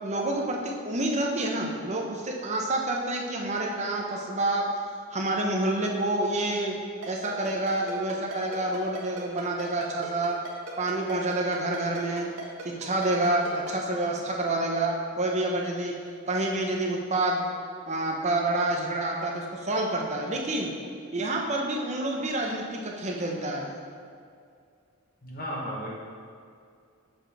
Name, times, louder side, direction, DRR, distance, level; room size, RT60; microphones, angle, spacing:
voice 1, 0.0-4.7 5.1-6.8 7.1-10.4 10.8-12.3 12.8-15.9 16.3-17.5 17.9-20.8 21.1-23.8, right 2 dB, 30° right, 0 dB, 0.8 m, -28 dB
Ringtone, 7.0-13.7, right 3 dB, 85° right, 1.4 m, -38 dB
voice 2, 25.2-25.9, equal, 40° left, -4 dB, 1.1 m, -34 dB
7.2 x 6.0 x 3.4 m, 2.3 s
head